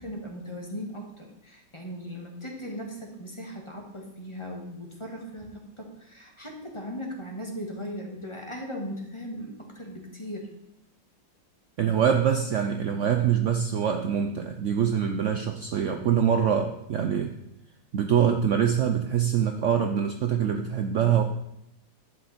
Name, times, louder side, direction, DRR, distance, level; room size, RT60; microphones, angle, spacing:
voice 1, 0.0-10.5, equal, 15° left, 0 dB, 1.7 m, -38 dB
voice 2, 11.8-17.3 17.9-21.2, right 8 dB, 75° right, 5 dB, 0.6 m, -24 dB
11.5 x 8.5 x 4.3 m, 0.83 s
omnidirectional pair, 2.1 m